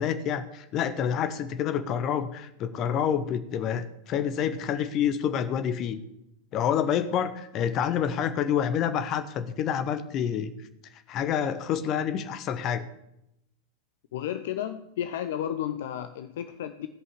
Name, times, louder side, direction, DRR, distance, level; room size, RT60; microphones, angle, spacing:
voice 1, 0.0-6.0 6.5-10.5 11.1-12.8, left 8 dB, 35° left, 11 dB, 1.1 m, -28 dB
voice 2, 14.1-16.9, left 10 dB, 55° left, 9 dB, 0.6 m, -32 dB
16.5 x 5.6 x 7.3 m, 0.83 s
figure-of-eight pair, 90°, 0 cm